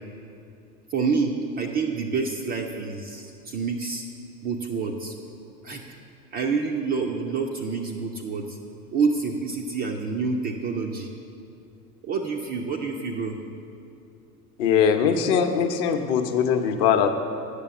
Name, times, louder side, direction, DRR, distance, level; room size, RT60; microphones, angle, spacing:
voice 1, 0.9-4.0 4.4-5.1 5.6-5.8 6.3-8.6 8.9-11.1 12.0-13.4, right 4 dB, 20° right, 2 dB, 0.4 m, -27 dB
voice 2, 14.6-17.1, left 7 dB, 40° left, 6 dB, 0.8 m, -21 dB
8.3 x 6.9 x 8.1 m, 2.6 s
figure-of-eight pair, 80°, 49 cm